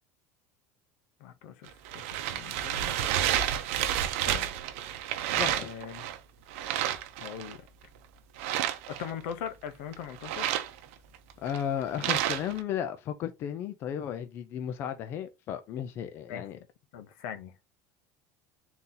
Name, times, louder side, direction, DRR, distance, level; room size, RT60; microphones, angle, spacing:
voice 1, 1.2-3.0 4.3-4.5 5.3-6.1 7.2-7.6 8.9-10.5 16.3-16.6 16.9-17.5, left 8 dB, 70° left, 0.7 m, -41 dB
sound 1, 1.7-6.2 6.5-7.6 8.4-9.3 9.9-12.6, right 11 dB, 85° right, 0.7 m, -30 dB
voice 2, 5.4-5.9 11.4-16.6, left 9 dB, 35° left, 0.4 m, -34 dB
3.9 x 2.8 x 3.8 m
cardioid pair, 175°, 7 cm